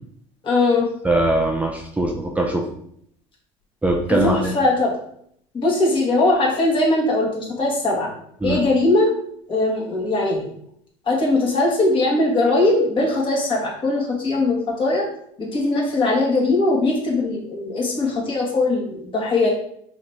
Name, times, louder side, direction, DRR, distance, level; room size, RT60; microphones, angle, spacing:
voice 1, 0.4-0.9 4.2-4.9 5.5-8.1 8.4-9.1 9.5-10.5 11.0-15.0 15.4-19.5, left 2 dB, 35° left, -3 dB, 1.8 m, -20 dB
voice 2, 1.0-2.7 3.8-4.5 8.4-8.6, right 1 dB, 10° right, 0 dB, 0.6 m, -21 dB
4.7 x 3.0 x 3.5 m, 0.69 s
supercardioid pair, 95°, 15 cm